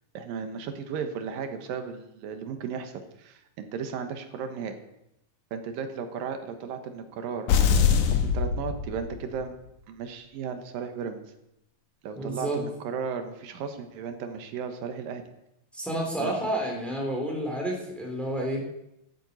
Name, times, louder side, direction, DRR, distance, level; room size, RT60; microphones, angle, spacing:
voice 1, 0.1-4.8 5.5-9.5 9.9-11.2 12.0-15.2 16.2-16.3, right 6 dB, 85° right, 7 dB, 3.0 m, -35 dB
sound 1, 7.5-9.4, left 7 dB, 70° left, 2.3 m, -23 dB
voice 2, 12.2-12.6 15.7-18.6, right 1 dB, ahead, 0 dB, 3.1 m, -30 dB
12.5 x 9.0 x 8.2 m, 0.85 s
omnidirectional pair, 3.9 m